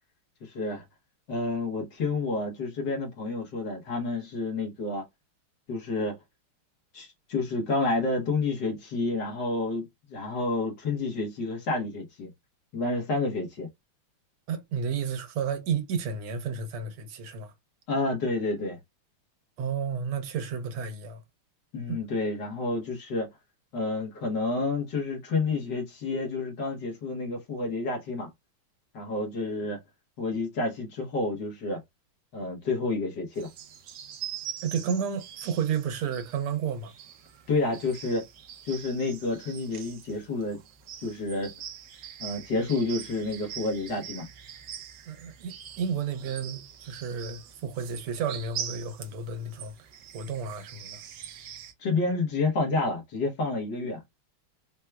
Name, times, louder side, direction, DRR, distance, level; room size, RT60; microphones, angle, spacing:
voice 1, 0.4-0.8 1.3-5.0 5.7-6.2 6.9-12.3 12.7-13.7 17.9-18.8 21.7-23.3 23.7-28.3 28.9-29.8 30.2-31.8 32.3-33.5 37.5-38.2 38.6-40.6 41.0-41.6 42.2-44.2 51.8-54.0, left 3 dB, 60° left, 1.5 m, -29 dB
voice 2, 14.5-17.5 19.6-21.2 21.9-22.0 34.6-36.9 45.1-51.0, right 6 dB, 85° right, 1.7 m, -32 dB
sound 1, 33.4-51.7, right 10 dB, 70° right, 1.3 m, -43 dB
4.4 x 2.2 x 2.2 m
omnidirectional pair, 2.3 m